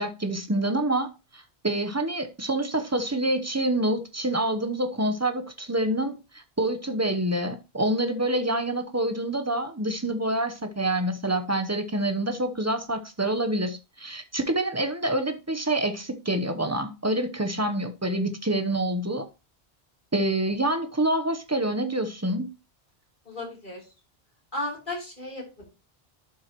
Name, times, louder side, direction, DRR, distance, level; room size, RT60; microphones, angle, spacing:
voice 1, 0.0-19.3 20.1-22.5, right 1 dB, 15° right, 0.8 m, -27 dB
voice 2, 23.3-23.9 24.5-25.7, left 2 dB, 50° left, 3.7 m, -34 dB
11.5 x 6.1 x 3.0 m
omnidirectional pair, 1.1 m